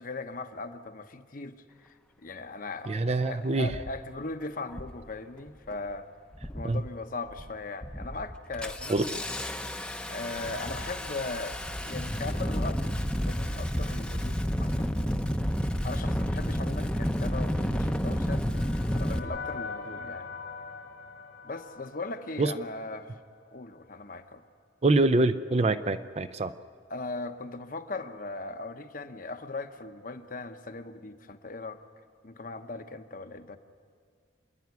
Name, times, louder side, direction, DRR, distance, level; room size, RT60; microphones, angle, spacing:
voice 1, 0.0-6.1 6.5-9.2 10.1-11.6 11.8-12.8 13.2-15.2 15.8-18.4 18.9-20.3 21.4-23.2 23.5-24.4 26.9-31.8 32.2-33.6, left 3 dB, 45° left, 8 dB, 0.9 m, -39 dB
Engine starting, 2.9-3.0 3.7-4.0 4.7-5.0 5.4-5.9 6.3-6.9 7.3-7.5 7.8-19.2, equal, 5° left, 0.7 m, -31 dB
voice 2, 2.9-3.7 6.6-6.8 8.9-9.1 22.4-22.5 24.8-26.5, right 2 dB, 35° right, 12 dB, 0.5 m, -25 dB
sound 1, 17.8-23.0, left 4 dB, 75° left, 1.6 m, -42 dB
27.0 x 11.0 x 9.5 m, 2.1 s
head